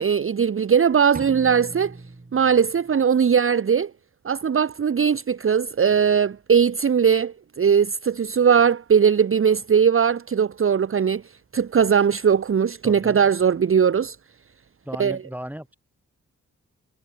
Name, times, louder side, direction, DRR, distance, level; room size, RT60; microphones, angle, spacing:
voice 1, 0.0-2.0 2.3-3.9 4.2-11.2 11.5-14.2 15.0-15.2, right 7 dB, 40° right, 0.7 m, -19 dB
sound 1, 1.1-3.1, right 2 dB, 25° right, 3.7 m, -40 dB
voice 2, 12.8-13.2 14.8-15.8, equal, 5° right, 7.8 m, -36 dB
cardioid pair, 55°, 32 cm